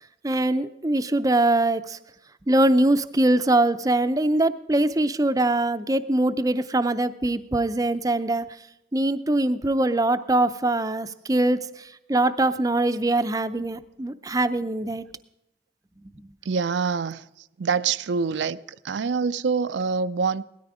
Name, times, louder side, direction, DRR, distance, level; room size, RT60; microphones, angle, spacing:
voice 1, 0.2-2.0 2.5-8.5 8.9-15.0, right 2 dB, 20° right, 0.5 m, -22 dB
voice 2, 16.5-17.2 17.6-18.6 18.8-20.4, right 5 dB, 80° right, 0.4 m, -25 dB
17.5 x 13.5 x 4.9 m
head